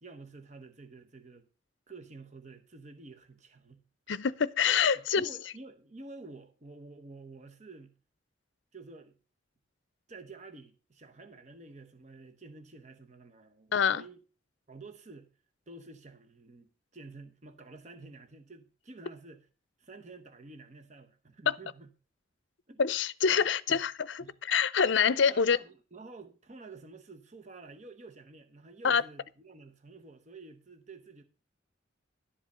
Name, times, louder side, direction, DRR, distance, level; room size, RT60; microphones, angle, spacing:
voice 1, 0.0-1.5 1.9-3.8 4.9-7.9 8.7-9.2 10.1-14.2 14.7-15.3 15.7-19.5 19.8-21.9 22.7-22.8 23.3-23.8 24.2-24.3 25.3-31.2, right 3 dB, 35° right, 0.9 m, -50 dB
voice 2, 4.1-5.3 13.7-14.0 21.5-21.6 22.8-25.6 28.8-29.0, left 6 dB, 70° left, 0.5 m, -26 dB
11.5 x 5.2 x 6.8 m
head